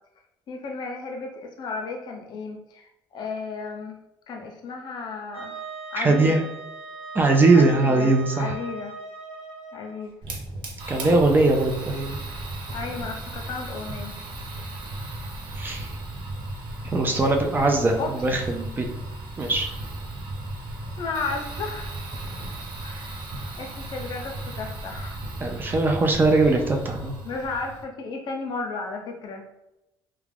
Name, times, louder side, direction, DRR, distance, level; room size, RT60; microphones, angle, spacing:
voice 1, 0.5-4.0 4.3-5.5 5.9-6.5 7.5-9.0 9.7-10.1 12.7-14.2 18.0-18.1 21.0-21.9 22.8-23.2 23.6-25.2 27.2-29.5, left 4 dB, 60° left, 3 dB, 0.6 m, -34 dB
Wind instrument woodwind instrument, 5.3-10.0, right 3 dB, 85° right, 1.0 m, -39 dB
voice 2, 6.0-6.4 7.1-8.6 10.9-12.2 15.6-15.9 16.9-18.9 19.4-19.7 25.4-27.1, right 2 dB, 25° right, 3 dB, 0.4 m, -21 dB
Fire, 10.2-27.8, right 2 dB, 65° right, 0.6 m, -35 dB
2.4 x 2.2 x 3.3 m, 0.89 s
cardioid pair, 110°, 9 cm